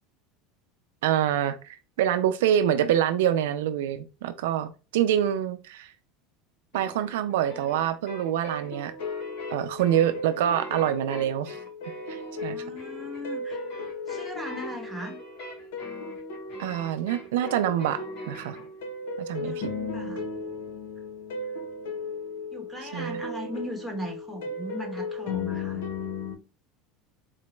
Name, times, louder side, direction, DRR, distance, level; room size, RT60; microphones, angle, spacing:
voice 1, 1.0-5.9 6.7-8.9 9.5-11.6 12.1-12.6 16.6-18.6 19.3-19.5 22.9-23.2, right 10 dB, 85° right, 0.3 m, -26 dB
sound 1, 6.7-18.7, left 1 dB, 65° left, 1.9 m, -44 dB
sound 2, 8.5-26.4, left 3 dB, 85° left, 0.9 m, -36 dB
voice 2, 12.4-13.6 14.1-15.2 19.4-20.2 22.5-25.8, equal, ahead, 1.0 m, -38 dB
3.9 x 2.1 x 3.0 m
supercardioid pair, 125°, 0 cm